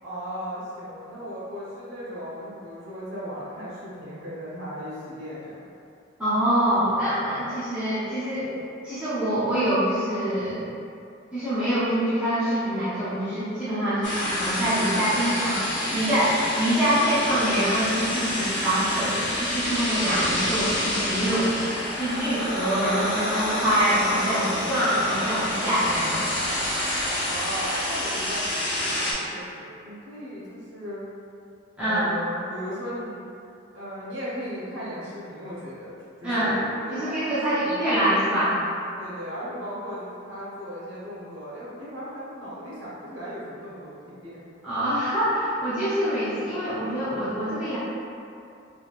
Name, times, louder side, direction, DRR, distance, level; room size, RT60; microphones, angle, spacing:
voice 1, 0.0-5.6 27.3-31.0 31.8-33.2 33.7-37.8 39.0-44.6, equal, 70° right, -9 dB, 1.1 m, -36 dB
voice 2, 6.2-8.6 8.8-10.6 11.3-15.6 15.9-21.5 22.0-26.2 31.8-32.1 36.2-36.6 36.9-38.6 44.6-47.8, equal, 5° right, -14 dB, 0.6 m, -25 dB
sound 1, 14.0-29.1, left 1 dB, 60° left, 0.8 m, -28 dB
3.4 x 2.8 x 2.4 m, 2.5 s
head